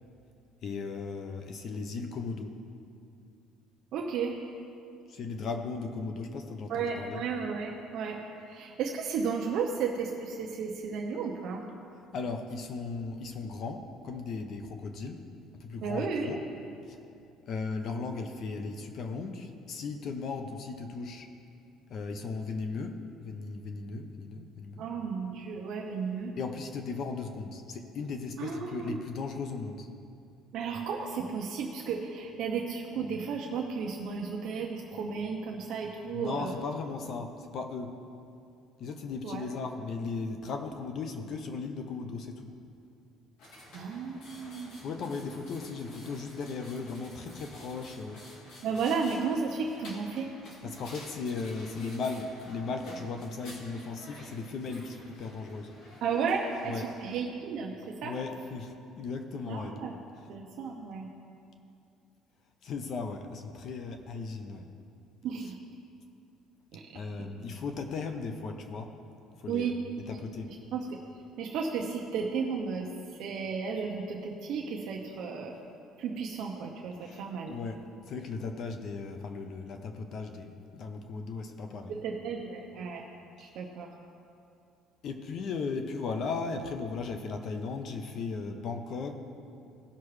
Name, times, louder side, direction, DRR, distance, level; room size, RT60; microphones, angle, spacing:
voice 1, 0.6-2.6 5.1-7.2 12.1-15.2 15.6-16.4 16.9-17.0 17.5-21.3 21.9-24.9 26.4-29.9 36.1-37.9 38.8-42.5 44.8-48.2 50.6-55.7 56.6-56.9 58.0-59.8 60.2-60.3 62.6-64.7 66.9-68.9 69.4-69.7 70.1-70.5 77.0-81.9 83.4-83.6 85.0-89.1, left 4 dB, 45° left, 6 dB, 0.7 m, -37 dB
voice 2, 3.9-4.3 6.7-8.2 8.5-11.7 15.8-16.3 24.8-26.3 28.4-29.0 30.5-36.5 39.2-39.4 43.7-44.8 48.6-50.3 56.0-58.1 59.4-59.9 60.3-61.1 65.2-65.6 66.7-66.9 69.5-69.8 70.1-70.2 70.7-71.0 71.4-75.6 76.0-77.5 81.9-83.0 83.4-83.9, right 5 dB, 55° right, 0 dB, 0.8 m, -33 dB
sound 1, 43.4-57.2, left 1 dB, 75° left, 2.5 m, -51 dB
17.0 x 5.9 x 3.2 m, 2.5 s
cardioid pair, 155°, 0 cm